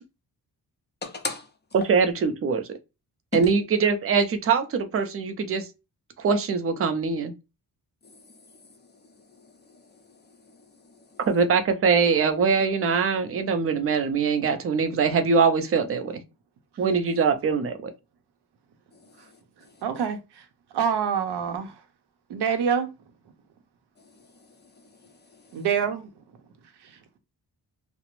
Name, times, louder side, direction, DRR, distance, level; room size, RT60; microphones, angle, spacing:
voice 1, 1.0-1.5 3.3-3.5 9.7-9.8 10.5-10.6 11.1-11.2 19.0-19.1 24.4-24.5 25.0-25.5, left 3 dB, 30° left, 0.4 m, -35 dB
voice 2, 1.7-2.7 3.3-5.7 6.2-7.3 11.3-16.2 16.8-17.9, right 5 dB, 35° right, 0.4 m, -23 dB
voice 3, 19.8-20.5 20.7-21.8 22.3-22.9 25.5-26.1 26.8-26.9, right 7 dB, 90° right, 0.6 m, -26 dB
2.4 x 2.0 x 2.9 m
wide cardioid pair, 145°, 39 cm